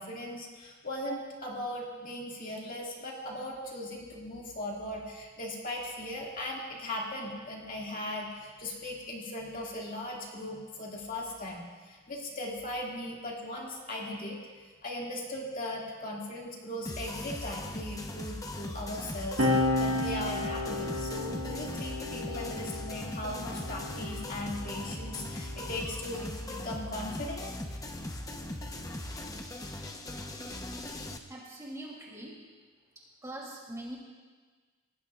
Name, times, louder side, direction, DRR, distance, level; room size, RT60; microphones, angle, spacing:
voice 1, 0.0-14.4 14.8-27.5, left 1 dB, 40° left, -3 dB, 2.2 m, -38 dB
sound 1, 16.8-31.2, left 1 dB, 15° left, 0.8 m, -39 dB
sound 2, 19.4-26.3 27.3-29.1, left 1 dB, 55° right, 1.8 m, -34 dB
voice 2, 31.3-32.4 32.9-34.0, right 1 dB, 15° right, -3 dB, 2.9 m, -43 dB
25.0 x 18.5 x 2.4 m, 1.4 s
head